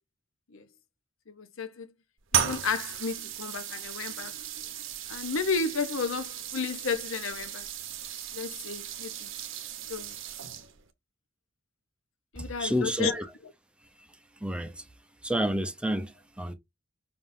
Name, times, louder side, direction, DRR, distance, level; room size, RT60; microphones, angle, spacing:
voice 1, 1.3-1.9 2.3-4.4 5.1-7.7 8.3-9.3 9.9-10.1 12.3-13.1, left 5 dB, 70° left, 0.8 m, -32 dB
sound 1, 2.3-10.9, right 9 dB, 70° right, 0.8 m, -35 dB
voice 2, 12.4-13.3 14.0-14.1 14.4-14.9 15.2-16.5, equal, 5° right, 0.6 m, -30 dB
5.1 x 3.6 x 2.6 m
head